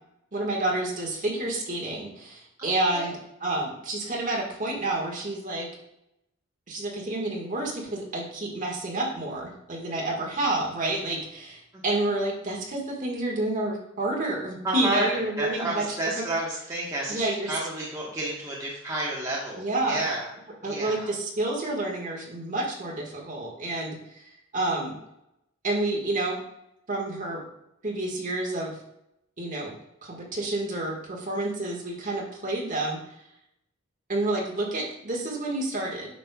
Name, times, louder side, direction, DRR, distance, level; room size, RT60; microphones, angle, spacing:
voice 1, 0.3-5.7 6.7-15.9 16.2-16.3 17.1-17.5 19.6-20.1 20.6-25.0 25.6-26.4 26.9-27.4 27.8-28.7 29.4-29.7 30.0-33.0 34.1-36.1, right 2 dB, 40° right, -2 dB, 1.7 m, -29 dB
voice 2, 2.6-3.1 11.7-11.8 14.6-20.3 20.6-21.1, right 1 dB, 15° right, -6 dB, 1.3 m, -31 dB
9.0 x 6.4 x 2.3 m, 0.84 s
head